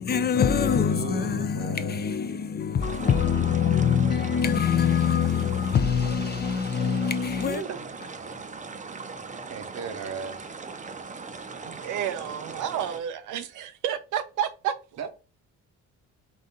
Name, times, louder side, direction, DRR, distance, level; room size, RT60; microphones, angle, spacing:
voice 1, 0.0-7.6, left 7 dB, 35° left, 0.4 m, -24 dB
voice 2, 0.6-2.6 7.4-7.9 9.5-10.5 15.0-15.1, right 5 dB, 60° right, 0.9 m, -37 dB
sound 1, 2.8-13.0, right 4 dB, 25° right, 0.6 m, -39 dB
voice 3, 11.6-14.7, right 9 dB, 85° right, 0.6 m, -30 dB
3.8 x 2.5 x 4.0 m
cardioid pair, 90°, 30 cm